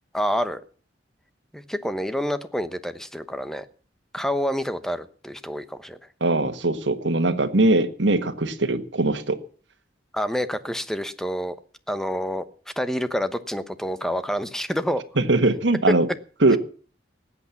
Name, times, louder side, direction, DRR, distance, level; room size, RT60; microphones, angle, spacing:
voice 1, 0.1-0.6 1.5-3.6 4.1-6.0 10.1-11.5 11.9-12.4 12.8-15.0, equal, 5° left, 12 dB, 1.0 m, -28 dB
voice 2, 6.2-9.4 15.2-16.1 16.4-16.6, right 2 dB, 75° right, 6 dB, 1.7 m, -21 dB
19.0 x 8.5 x 7.2 m, 0.41 s
head